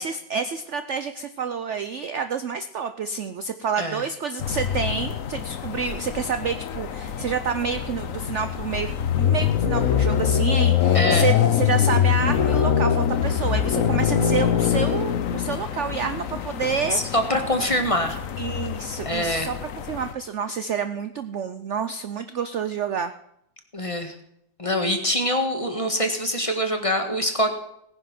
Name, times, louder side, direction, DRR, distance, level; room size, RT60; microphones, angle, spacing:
voice 1, 0.0-17.0 18.4-19.6 19.9-23.1, right 6 dB, 65° right, 10 dB, 0.7 m, -28 dB
sound 1, 4.4-20.1, left 9 dB, 55° left, 1.0 m, -24 dB
voice 2, 10.9-11.3 16.9-18.2 19.1-19.5 23.7-24.1 24.6-27.5, equal, 20° left, 4 dB, 1.6 m, -24 dB
18.0 x 10.0 x 6.0 m, 0.75 s
omnidirectional pair, 2.1 m